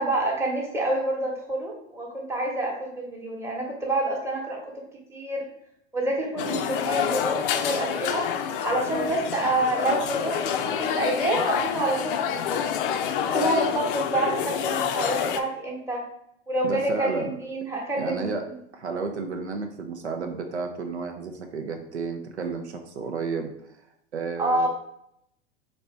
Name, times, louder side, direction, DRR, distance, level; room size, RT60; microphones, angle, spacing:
voice 1, 0.0-4.6 5.1-5.4 5.9-8.2 8.6-12.7 13.2-16.0 16.5-18.6 24.4-24.7, right 2 dB, 10° right, -2 dB, 1.0 m, -27 dB
sound 1, 6.4-15.4, left 8 dB, 55° left, 0.5 m, -27 dB
voice 2, 8.8-9.1 16.6-17.3 18.0-18.4 18.7-23.7 24.1-24.7, right 4 dB, 85° right, 4 dB, 0.6 m, -32 dB
4.2 x 2.8 x 3.2 m, 0.73 s
hypercardioid pair, 95°, 33 cm